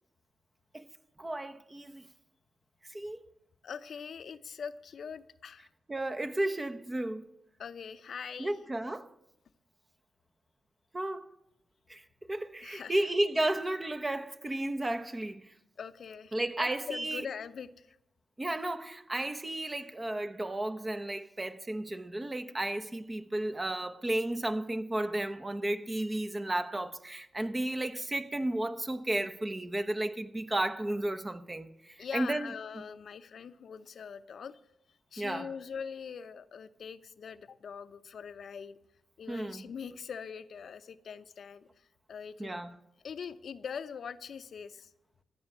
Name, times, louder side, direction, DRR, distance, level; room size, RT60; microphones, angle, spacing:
voice 1, 1.2-2.1 2.9-3.2 5.9-7.3 8.4-9.1 10.9-11.3 11.9-15.5 16.3-17.2 18.4-32.5 35.2-35.5 39.3-39.7 42.4-42.7, right 1 dB, 25° right, 1.0 m, -33 dB
voice 2, 3.6-5.7 7.6-8.6 12.6-13.0 15.8-18.0 32.0-34.6 35.1-38.8 39.2-42.7 43.0-44.9, left 6 dB, 70° left, 0.7 m, -42 dB
15.0 x 7.0 x 9.7 m
cardioid pair, 70°, 0 cm